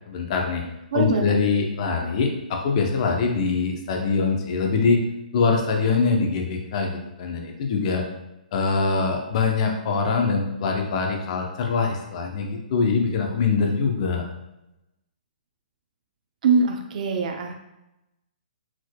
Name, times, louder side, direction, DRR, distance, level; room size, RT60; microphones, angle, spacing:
voice 1, 0.1-0.6 0.9-5.0 5.3-8.0 8.5-14.2, left 4 dB, 45° left, 2 dB, 0.8 m, -23 dB
voice 2, 0.9-1.2 16.4-17.5, right 4 dB, 55° right, 4 dB, 0.6 m, -22 dB
4.5 x 4.3 x 2.3 m, 0.93 s
hypercardioid pair, 150°, 5 cm